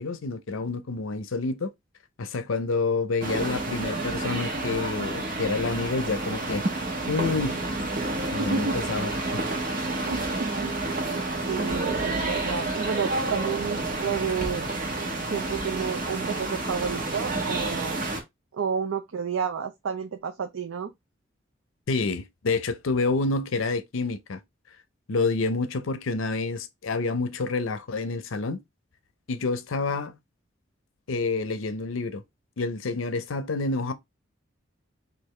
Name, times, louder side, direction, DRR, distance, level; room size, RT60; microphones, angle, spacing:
voice 1, 0.0-1.7 2.2-6.6 7.1-7.6 8.3-9.4 21.9-24.4 25.1-28.6 29.3-30.2 31.1-32.2 32.6-33.9, left 3 dB, 80° left, 0.6 m, -28 dB
sound 1, 3.2-18.2, right 2 dB, 45° right, 1.0 m, -29 dB
voice 2, 8.4-8.8 10.1-14.6 15.3-18.0 18.5-20.9, right 6 dB, 90° right, 0.5 m, -31 dB
4.8 x 2.6 x 3.1 m
head